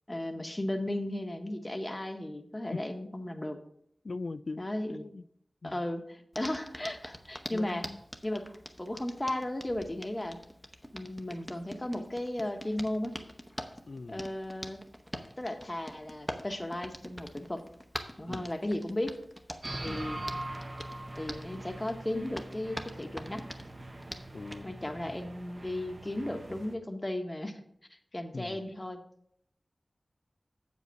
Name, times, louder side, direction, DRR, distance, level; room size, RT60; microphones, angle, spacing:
voice 1, 0.1-3.6 4.6-5.1 5.6-7.9 8.2-10.4 10.9-13.2 14.1-14.8 15.4-17.6 18.2-19.2 19.8-20.2 21.2-23.4 24.6-27.6 28.1-29.0, left 1 dB, 25° left, 1.1 m, -35 dB
voice 2, 4.0-4.6 4.9-5.2 5.6-5.8 7.5-8.0 13.9-14.3 18.3-18.5 19.9-20.0 24.3-25.1 28.3-28.6, left 3 dB, 75° left, 0.3 m, -40 dB
Hands, 6.3-24.6, equal, 5° left, 0.9 m, -45 dB
sound 1, 19.6-26.7, right 1 dB, 45° right, 1.0 m, -42 dB
7.9 x 5.2 x 6.8 m
wide cardioid pair, 60°, 0 cm